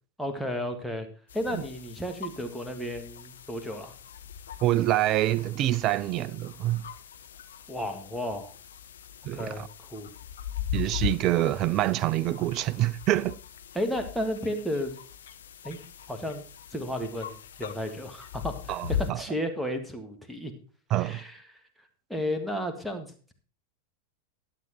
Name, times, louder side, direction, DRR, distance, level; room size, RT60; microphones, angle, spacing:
voice 1, 0.2-1.1 1.3-3.9 7.7-8.5 9.3-9.6 9.9-10.1 13.8-14.9 15.6-15.8 16.1-16.4 16.7-20.5 21.0-21.6 22.1-23.3, equal, ahead, 1.7 m, -33 dB
sound 1, 1.3-19.1, left 10 dB, 65° left, 0.9 m, -40 dB
voice 2, 4.6-6.9 9.3-9.7 10.7-13.4 18.7-19.2 20.9-21.2, right 14 dB, 35° right, 0.5 m, -26 dB
12.0 x 8.3 x 4.4 m
figure-of-eight pair, 90°, 0 cm